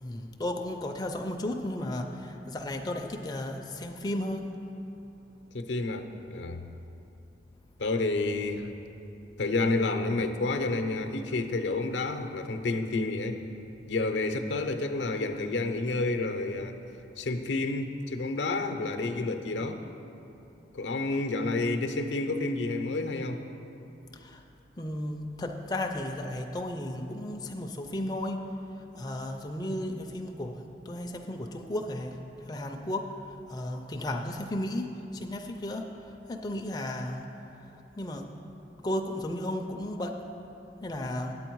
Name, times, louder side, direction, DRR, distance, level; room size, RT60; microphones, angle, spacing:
voice 1, 0.0-4.5 24.1-24.4 24.8-28.5 28.9-32.2 32.5-33.1 33.5-35.9 36.3-37.2 38.0-38.3 38.8-40.1 40.8-41.4, left 1 dB, 20° left, 2 dB, 0.4 m, -34 dB
voice 2, 5.5-6.6 7.8-8.7 9.4-13.4 13.9-16.8 17.2-19.8 20.7-23.4, left 2 dB, 80° left, 6 dB, 0.6 m, -29 dB
9.1 x 7.9 x 4.6 m, 2.9 s
head